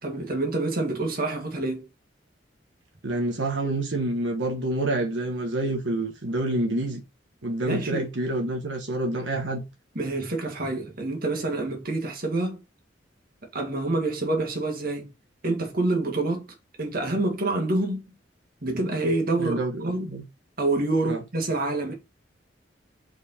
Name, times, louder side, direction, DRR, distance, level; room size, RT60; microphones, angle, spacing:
voice 1, 0.0-1.9 7.7-8.1 10.0-12.6 13.5-15.1 15.4-18.0 18.6-20.1 20.6-21.9, right 2 dB, 55° right, 1.9 m, -27 dB
voice 2, 3.0-7.0 7.4-9.6 19.3-20.2 21.1-21.2, right 1 dB, 85° right, 1.3 m, -28 dB
4.9 x 4.5 x 4.2 m
head